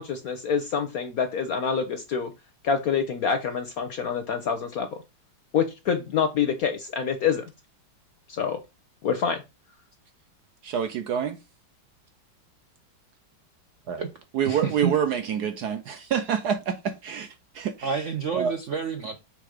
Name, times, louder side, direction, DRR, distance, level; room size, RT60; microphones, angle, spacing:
voice 1, 0.0-2.3 2.6-5.0 5.5-7.4 8.3-8.6 9.0-9.4, left 6 dB, 65° left, 0.9 m, -26 dB
voice 2, 10.6-11.4 13.9-14.0 14.3-18.0 18.3-18.5, right 8 dB, 70° right, 1.0 m, -27 dB
voice 3, 14.4-14.9 17.8-19.2, right 6 dB, 85° right, 0.6 m, -29 dB
6.8 x 3.6 x 5.0 m
omnidirectional pair, 2.3 m